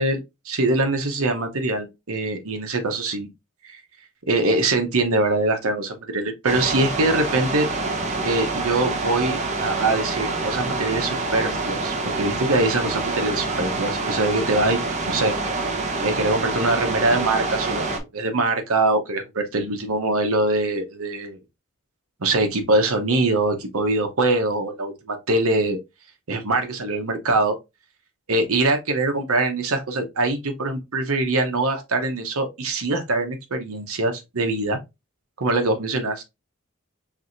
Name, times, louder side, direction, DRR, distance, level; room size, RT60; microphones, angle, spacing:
voice 1, 0.5-3.3 3.6-3.8 4.3-7.7 8.2-14.8 15.1-15.3 16.0-17.9 18.1-21.4 22.2-25.8 26.3-27.5 28.3-34.8 35.4-36.2, right 2 dB, 75° right, 1.0 m, -23 dB
sound 1, 6.4-18.0, right 3 dB, 30° right, 0.7 m, -26 dB
4.7 x 3.4 x 2.6 m
head